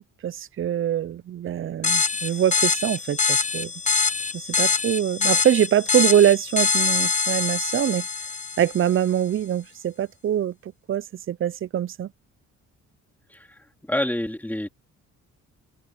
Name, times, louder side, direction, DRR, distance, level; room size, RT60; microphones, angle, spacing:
voice 1, 0.0-3.7 4.3-8.1 8.6-12.1, right 10 dB, 45° right, 0.5 m, -24 dB
sound 1, 1.8-9.0, left 4 dB, 25° left, 1.2 m, -24 dB
voice 2, 13.9-14.7, left 1 dB, 5° left, 3.9 m, -27 dB
cardioid pair, 90°, 30 cm